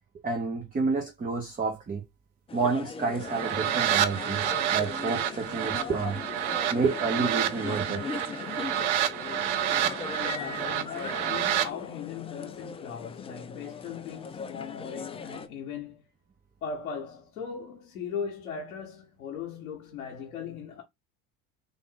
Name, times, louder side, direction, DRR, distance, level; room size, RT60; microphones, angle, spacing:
voice 1, 0.2-2.0 2.5-6.2 6.7-8.0, right 4 dB, 20° right, 0.9 m, -29 dB
sound 1, 2.5-15.5, left 5 dB, 15° left, 0.3 m, -39 dB
sound 2, 3.2-11.7, right 10 dB, 65° right, 0.6 m, -29 dB
voice 2, 10.2-16.0 16.6-20.8, left 6 dB, 90° left, 0.9 m, -38 dB
3.5 x 2.5 x 3.8 m
hypercardioid pair, 70°, 42 cm